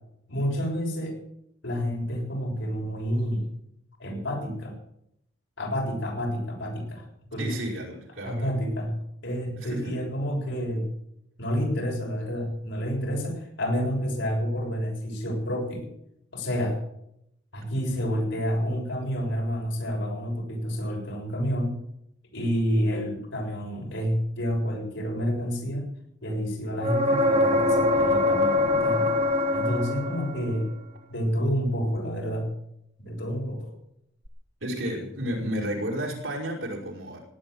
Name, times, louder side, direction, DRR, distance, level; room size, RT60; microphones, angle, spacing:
voice 1, 0.3-1.2 1.6-3.5 4.0-4.7 5.6-7.1 7.3-7.5 8.2-9.0 9.2-10.9 11.4-15.9 16.3-16.8 17.5-21.8 22.3-25.9 26.2-29.1 29.5-30.7 31.1-32.5 33.0-33.7, equal, 65° left, -1 dB, 7.0 m, -29 dB
voice 2, 7.4-8.6 9.6-10.0 34.6-37.2, equal, 75° right, -1 dB, 5.6 m, -32 dB
sound 1, 26.8-30.6 34.3-34.4, left 2 dB, 30° right, 1.3 m, -23 dB
18.0 x 9.7 x 7.9 m, 0.76 s
head